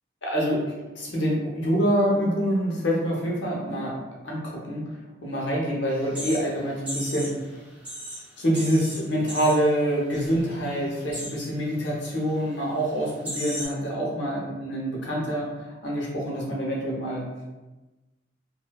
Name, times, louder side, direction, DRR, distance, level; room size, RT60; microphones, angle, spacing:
voice 1, 0.2-0.6 1.0-4.0 4.2-4.8 5.2-7.3 8.4-15.5 15.8-17.2, equal, 70° left, -3 dB, 0.7 m, -26 dB
sound 1, 5.9-7.4 7.7-9.8 10.1-10.4 10.7-11.4 12.1-12.2 12.8-12.9 13.2-13.7, equal, 5° right, 0.4 m, -36 dB
2.6 x 2.1 x 2.2 m, 1.1 s
head